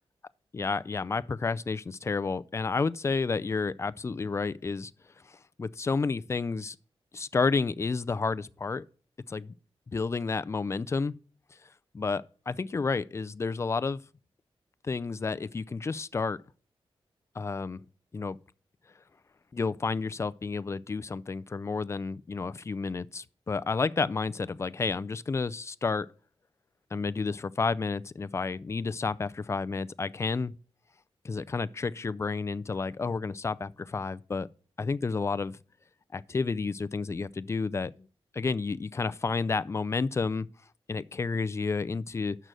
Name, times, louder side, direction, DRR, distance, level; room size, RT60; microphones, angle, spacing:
voice 1, 0.5-4.9 5.2-6.8 7.1-8.8 9.3-9.5 9.9-11.1 11.9-14.0 14.8-16.4 17.4-17.8 18.1-18.4 19.5-26.1 26.9-30.5 31.2-34.5 34.8-35.6 36.1-38.1 38.3-40.5 40.9-42.4, left 4 dB, 30° left, 0.4 m, -31 dB
6.7 x 6.2 x 7.6 m
wide cardioid pair, 110°, 10 cm